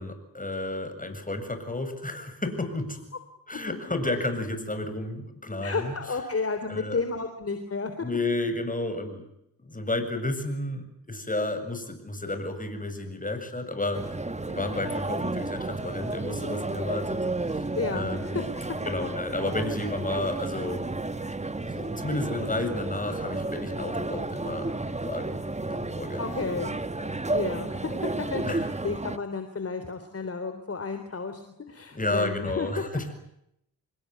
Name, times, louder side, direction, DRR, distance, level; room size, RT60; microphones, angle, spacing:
voice 1, 0.0-3.2 3.5-6.0 6.7-7.0 8.0-9.2 9.6-14.2 14.5-18.4 18.9-20.8 21.6-25.4 25.7-26.6 28.4-28.7 31.9-33.1, left 2 dB, 20° left, 8 dB, 7.6 m, -32 dB
voice 2, 5.6-7.9 17.8-18.4 19.0-19.1 26.2-26.7 27.3-32.8, left 4 dB, 40° left, 8 dB, 3.5 m, -32 dB
sound 1, 13.9-29.2, right 2 dB, 20° right, 1.5 m, -32 dB
27.0 x 21.0 x 9.6 m, 0.78 s
cardioid pair, 65°, 36 cm